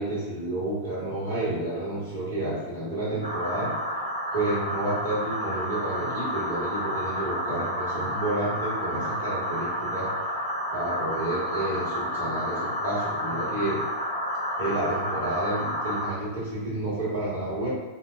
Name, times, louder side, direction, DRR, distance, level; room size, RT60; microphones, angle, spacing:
voice 1, 0.0-3.7 4.3-10.1 10.7-13.8 14.6-17.7, right 1 dB, 70° right, -8 dB, 1.4 m, -30 dB
sound 1, 3.2-16.1, equal, 70° left, 1.4 m, -30 dB
3.9 x 2.2 x 2.4 m, 1.3 s
figure-of-eight pair, 90°, 0 cm